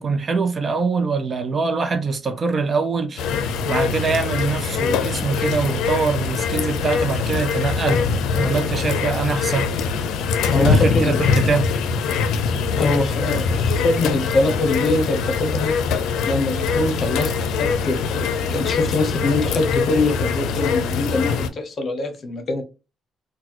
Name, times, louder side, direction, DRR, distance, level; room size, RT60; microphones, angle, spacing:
voice 1, 0.0-8.0 8.4-9.7 10.6-11.7, right 4 dB, 40° right, 0.5 m, -23 dB
sound 1, 3.2-21.5, left 5 dB, 85° left, 0.5 m, -23 dB
voice 2, 10.5-11.2 12.8-15.7 16.3-22.6, left 2 dB, 50° left, 0.9 m, -23 dB
3.8 x 2.2 x 2.9 m
cardioid pair, 90°, 0 cm